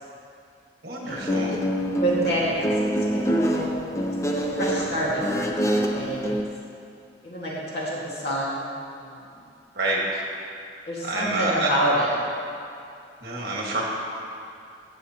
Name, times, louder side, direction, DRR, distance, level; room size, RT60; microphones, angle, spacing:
voice 1, 0.8-1.6 9.7-10.2 11.0-11.7 13.2-13.8, right 2 dB, 55° right, -3 dB, 1.6 m, -27 dB
Guitar, 1.1-6.4, equal, 15° left, 0.4 m, -25 dB
voice 2, 2.0-3.8 4.3-6.4 7.2-8.7 9.0-9.4 10.9-12.1, right 1 dB, 60° left, -6 dB, 1.8 m, -28 dB
15.0 x 6.4 x 2.9 m, 2.5 s
head